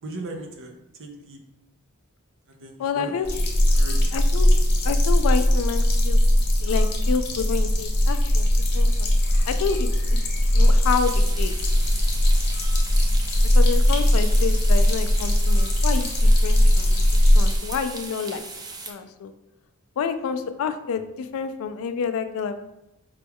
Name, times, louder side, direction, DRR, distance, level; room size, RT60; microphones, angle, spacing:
voice 1, 0.0-0.7 1.0-1.4 2.5-3.3 3.7-4.1, right 2 dB, 60° right, 2 dB, 0.7 m, -37 dB
voice 2, 2.8-3.3 4.1-4.5 4.8-6.2 6.6-8.5 8.7-9.1 9.5-10.2 10.5-11.6 13.5-18.4 18.9-19.3 20.0-22.6, left 6 dB, 65° left, 9 dB, 0.3 m, -29 dB
sound 1, 3.2-17.6, left 1 dB, 50° left, 0.8 m, -19 dB
sound 2, 10.8-18.9, right 3 dB, 15° right, 0.4 m, -38 dB
5.0 x 2.3 x 3.4 m, 0.89 s
head